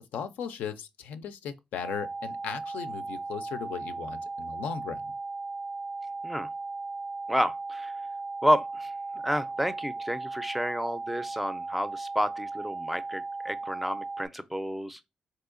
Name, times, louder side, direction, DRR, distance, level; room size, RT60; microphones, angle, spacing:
voice 1, 0.1-5.0, left 8 dB, 80° left, 0.3 m, -37 dB
sound 1, 1.8-14.3, right 3 dB, 65° right, 0.6 m, -37 dB
voice 2, 7.3-7.9 8.4-8.9 9.2-15.1, equal, 5° right, 0.4 m, -30 dB
3.7 x 2.7 x 2.4 m
supercardioid pair, 55°, 3 cm